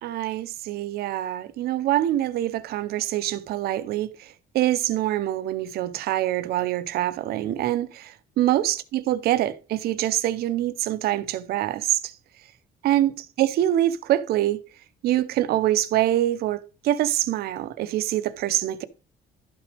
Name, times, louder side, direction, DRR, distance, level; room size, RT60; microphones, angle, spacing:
voice 1, 0.0-12.1 12.8-14.6 15.0-18.9, right 13 dB, 60° right, 0.6 m, -25 dB
12.0 x 6.1 x 3.3 m
cardioid pair, 180°, 19 cm